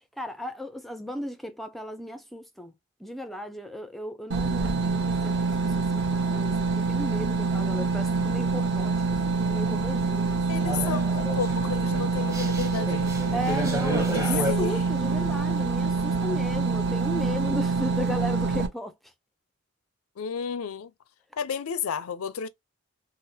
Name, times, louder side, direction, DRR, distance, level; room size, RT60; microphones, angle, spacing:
voice 1, 0.2-2.7 3.0-11.0 13.3-18.9, equal, ahead, 0.4 m, -35 dB
sound 1, 4.3-18.7, right 4 dB, 55° right, 0.8 m, -26 dB
voice 2, 10.5-13.1 14.1-14.8 20.2-20.9 21.4-22.5, left 7 dB, 85° left, 0.5 m, -32 dB
sound 2, 10.6-14.5, equal, 15° right, 0.7 m, -32 dB
3.6 x 2.0 x 2.7 m
head